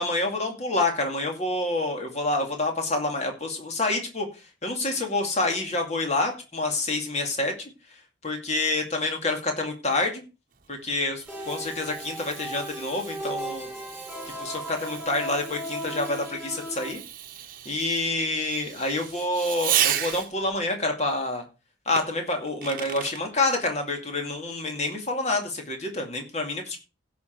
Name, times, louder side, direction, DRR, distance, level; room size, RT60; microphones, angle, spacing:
voice 1, 0.0-4.3 4.6-7.7 8.2-10.2 10.7-13.7 14.4-17.0 17.7-21.4 21.9-26.8, left 2 dB, 35° left, 3 dB, 2.3 m, -27 dB
Fireworks, 10.6-20.5 22.0-23.2, right 10 dB, 45° right, 1.0 m, -34 dB
sound 1, 11.3-16.9, equal, ahead, 6.3 m, -36 dB
16.0 x 6.1 x 4.6 m, 0.32 s
head